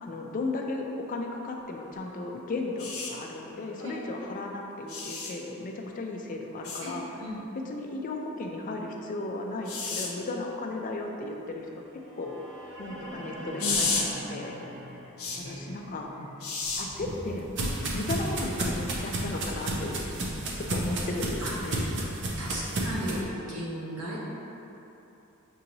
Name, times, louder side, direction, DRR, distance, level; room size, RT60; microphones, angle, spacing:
voice 1, 0.0-7.2 7.7-11.7 12.2-12.5 12.8-14.6 15.4-16.1 16.8-17.5 17.9-20.0 20.5-21.9, left 2 dB, 35° left, 1 dB, 0.3 m, -35 dB
sound 1, 2.8-3.1 4.9-5.3 6.6-6.8 9.7-10.1 13.6-14.0 15.2-15.4 16.4-16.8 18.3-18.5, left 4 dB, 75° left, 0.7 m, -30 dB
voice 2, 6.8-7.4 13.6-13.8 15.2-15.6 16.2-16.3 20.7-20.9 21.4-21.5 22.4-24.2, equal, 90° right, -6 dB, 1.0 m, -36 dB
sound 2, 11.8-19.9, right 1 dB, 15° right, 1.4 m, -45 dB
sound 3, 16.6-23.2, right 1 dB, 55° right, 0.5 m, -32 dB
6.2 x 2.8 x 2.7 m, 3.0 s
head